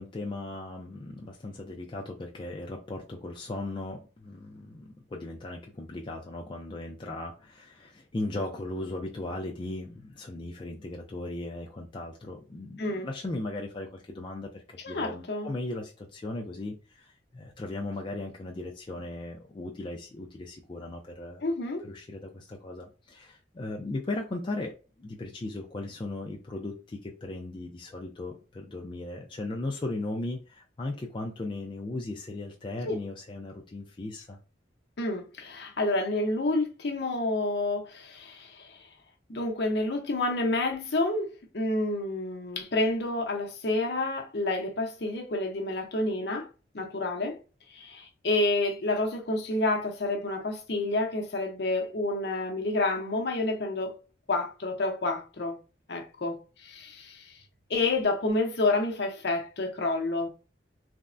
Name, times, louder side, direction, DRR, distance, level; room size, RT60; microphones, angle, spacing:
voice 1, 0.0-21.4 21.8-24.7 25.0-34.4, left 2 dB, 25° left, 0.3 m, -37 dB
voice 2, 14.8-15.5 21.4-21.8 32.8-33.0 35.0-38.8 39.3-46.5 46.7-47.4 47.7-53.9 54.3-55.6 55.9-57.4 57.7-60.3, left 2 dB, 60° left, 0.7 m, -29 dB
3.4 x 2.0 x 2.5 m
head